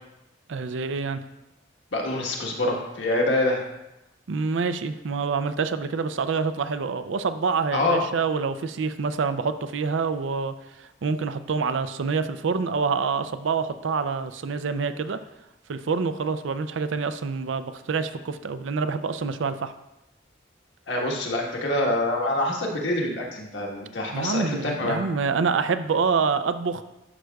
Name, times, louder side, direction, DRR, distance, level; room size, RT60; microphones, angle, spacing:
voice 1, 0.5-1.2 4.3-15.2 15.7-19.7 24.1-26.8, right 5 dB, 85° right, 10 dB, 0.5 m, -26 dB
voice 2, 1.9-3.6 7.7-8.0 20.9-25.0, left 1 dB, 75° left, -1 dB, 1.4 m, -25 dB
11.0 x 6.3 x 2.3 m, 0.92 s
head